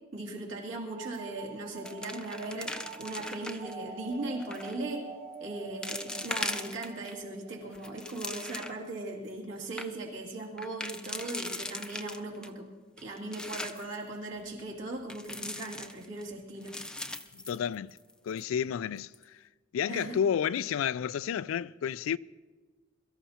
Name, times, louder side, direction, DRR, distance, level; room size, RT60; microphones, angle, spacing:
voice 1, 0.1-5.1 5.4-12.7 13.0-16.8 19.9-20.2, right 2 dB, 65° right, 2.6 m, -38 dB
sound 1, 0.9-10.3, right 5 dB, 30° right, 1.1 m, -47 dB
sound 2, 1.1-1.4 1.7-3.7 4.4-4.8 5.3-5.4 5.8-7.1 7.6-8.9 9.3-9.4 9.6-9.9 10.6-12.5 13.0-13.9 15.1-16.2 16.6-18.1 18.4-18.5 19.0-19.2, left 1 dB, 5° left, 0.5 m, -39 dB
voice 2, 17.3-18.0 18.2-19.4 19.7-22.2, left 8 dB, 80° left, 0.3 m, -31 dB
22.5 x 13.5 x 2.9 m
head